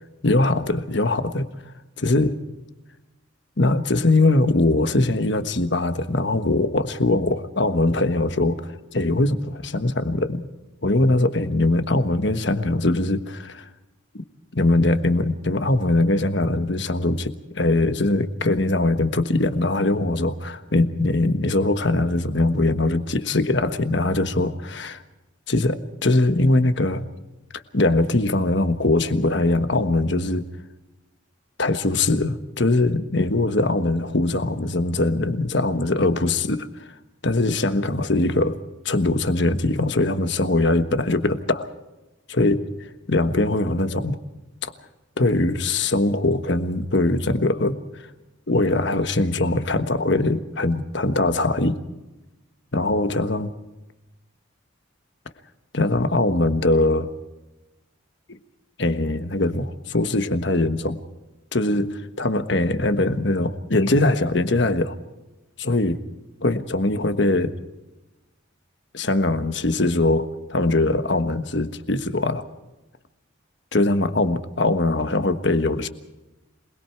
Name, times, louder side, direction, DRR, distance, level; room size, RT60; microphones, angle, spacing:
voice 1, 0.2-1.4 2.0-2.4 3.6-10.5 10.8-13.6 14.5-25.0 25.5-27.0 27.5-30.5 31.6-36.7 37.2-38.6 38.8-41.7 42.3-42.6 43.1-44.2 44.6-44.7 45.2-47.8 48.5-51.8 52.7-53.5 55.7-57.1 58.8-61.0 61.5-65.0 65.6-66.0 66.4-67.6 68.9-72.4 73.7-75.9, left 2 dB, 55° left, 9 dB, 1.4 m, -21 dB
27.0 x 21.0 x 4.6 m, 1.0 s
head